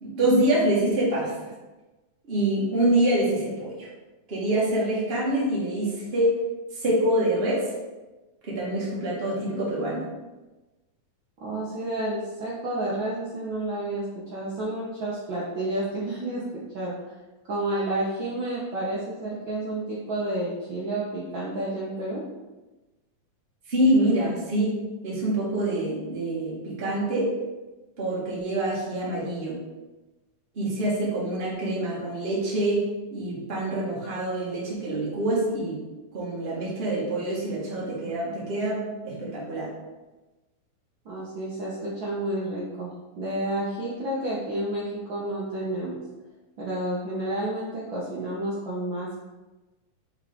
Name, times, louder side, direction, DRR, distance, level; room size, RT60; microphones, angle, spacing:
voice 1, 0.0-1.5 2.3-3.9 4.3-6.4 6.7-7.7 8.4-10.0 23.7-24.7 25.0-27.3 28.0-29.6 30.5-32.8 33.1-35.8 36.1-39.7, right 1 dB, 30° right, -6 dB, 1.1 m, -25 dB
voice 2, 11.4-17.1 17.5-22.2 41.0-46.0 46.6-49.2, right 1 dB, 75° right, -6 dB, 1.1 m, -30 dB
5.5 x 4.8 x 3.6 m, 1.1 s
omnidirectional pair, 3.6 m